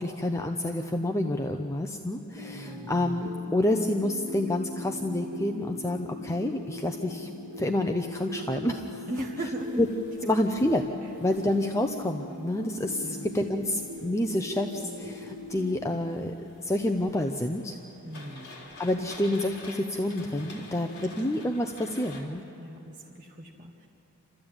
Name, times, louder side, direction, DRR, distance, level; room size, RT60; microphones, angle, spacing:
voice 1, 0.0-7.3 7.6-9.1 9.8-9.9 10.3-10.9 11.2-16.3 16.6-17.8 18.8-22.4, left 1 dB, 15° left, 3 dB, 0.6 m, -28 dB
sound 1, 2.3-15.8, left 2 dB, 10° right, 2.0 m, -40 dB
voice 2, 2.5-2.9 9.1-9.8 11.0-11.1 13.0-13.3 18.0-18.6 22.6-23.9, right 1 dB, 35° right, -1 dB, 1.3 m, -38 dB
sound 2, 9.6-22.2, left 2 dB, 45° left, 3.5 m, -50 dB
29.5 x 14.0 x 8.9 m, 2.9 s
head